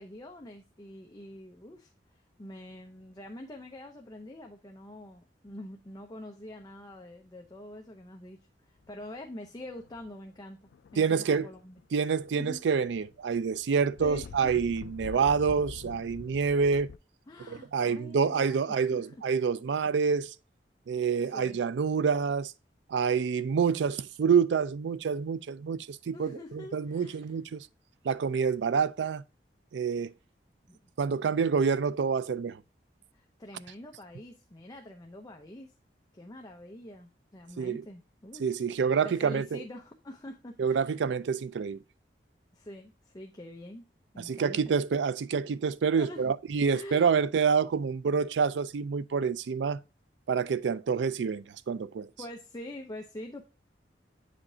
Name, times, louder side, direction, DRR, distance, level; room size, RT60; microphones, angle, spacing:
voice 1, 0.0-8.4 8.7-11.8 12.3-12.6 14.0-14.5 15.0-15.1 17.3-19.2 21.2-21.6 26.1-27.3 30.7-30.8 33.1-35.7 36.1-38.5 39.0-40.9 42.5-43.8 44.1-44.6 46.0-46.3 46.6-47.1 52.2-53.4, left 1 dB, 20° left, 0.7 m, -45 dB
sound 1, 8.8-9.1 9.6-10.1 10.7-11.9 12.2-17.0, left 6 dB, 70° left, 0.3 m, -47 dB
voice 2, 11.0-11.5 11.9-16.9 17.5-20.3 20.9-22.5 22.9-27.7 28.0-29.2 29.7-30.1 31.0-32.6 37.6-37.8 38.4-39.6 40.6-41.8 44.2-49.8 50.3-52.1, right 6 dB, 85° right, 0.4 m, -27 dB
8.6 x 5.1 x 2.7 m
head